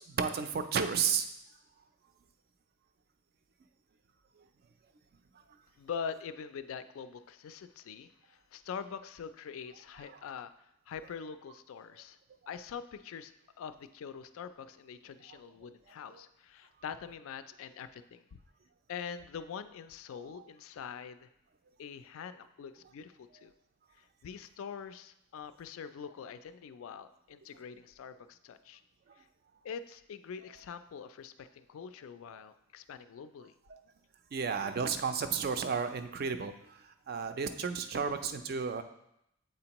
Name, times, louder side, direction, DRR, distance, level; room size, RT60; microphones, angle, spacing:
voice 1, 0.1-1.3 15.3-15.4 16.1-16.2 34.3-36.8 37.1-38.8, right 6 dB, 45° right, 9 dB, 0.4 m, -32 dB
voice 2, 5.8-10.5 10.9-12.2 12.5-13.3 13.6-18.2 18.9-21.3 21.8-23.5 24.0-28.8 29.2-29.3 29.6-33.5, left 6 dB, 70° left, 12 dB, 0.3 m, -44 dB
7.7 x 4.3 x 2.9 m, 0.79 s
head